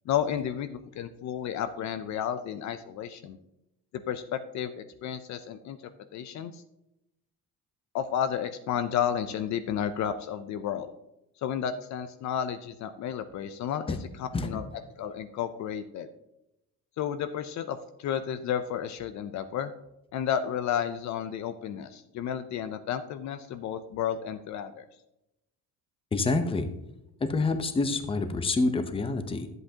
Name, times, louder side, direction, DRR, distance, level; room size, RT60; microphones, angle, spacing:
voice 1, 0.1-3.4 4.1-5.8 6.1-6.6 7.9-10.9 11.4-14.6 15.0-16.1 17.0-19.7 20.1-24.8, left 9 dB, 55° left, 10 dB, 0.6 m, -32 dB
voice 2, 26.1-26.7 27.2-29.5, left 3 dB, 15° left, 8 dB, 0.7 m, -27 dB
11.0 x 7.9 x 2.8 m, 0.88 s
cardioid pair, 120°, 33 cm